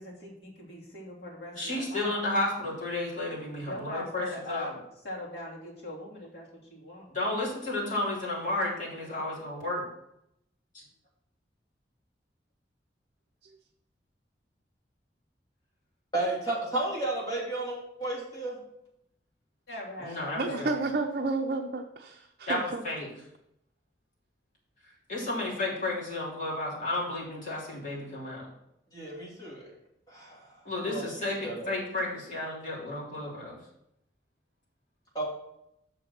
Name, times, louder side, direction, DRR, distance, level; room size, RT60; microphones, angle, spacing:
voice 1, 0.0-2.2 3.6-7.1 19.7-20.7, left 1 dB, 60° left, -4 dB, 2.9 m, -41 dB
voice 2, 1.5-4.7 7.1-9.9 20.0-20.7 22.5-23.1 25.1-28.5 30.6-33.6, left 2 dB, 45° left, -5 dB, 3.2 m, -32 dB
voice 3, 16.1-18.6 28.9-29.7 30.1-30.6 30.8-31.0 31.4-31.7 35.1-35.3, right 2 dB, 20° left, -5 dB, 3.0 m, -33 dB
voice 4, 20.4-22.8, right 3 dB, 55° right, 2 dB, 0.6 m, -31 dB
6.5 x 6.3 x 5.7 m, 0.79 s
head